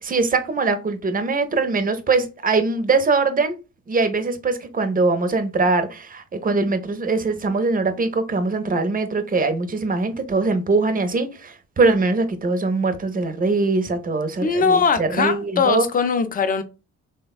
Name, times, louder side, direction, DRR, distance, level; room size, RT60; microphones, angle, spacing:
voice 1, 0.0-3.6 3.9-15.9, right 3 dB, 30° right, 0.6 m, -22 dB
voice 2, 14.4-16.6, left 5 dB, 30° left, 0.5 m, -20 dB
3.3 x 2.1 x 2.3 m
cardioid pair, 90°, 30 cm